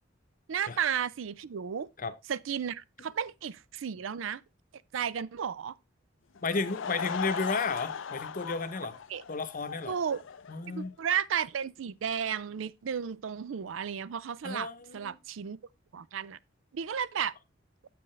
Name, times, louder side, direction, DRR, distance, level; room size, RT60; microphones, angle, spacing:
voice 1, 0.5-1.9 2.3-4.4 4.9-5.8 9.1-9.2 9.9-10.2 10.7-15.6 15.9-16.4 16.7-17.3, right 8 dB, 90° right, 0.4 m, -33 dB
Laughter / Crowd, 6.3-10.9, left 7 dB, 85° left, 0.5 m, -38 dB
voice 2, 6.4-9.0 9.3-10.0 10.5-10.9 14.4-15.2, left 4 dB, 45° left, 0.8 m, -33 dB
7.8 x 7.6 x 3.2 m
head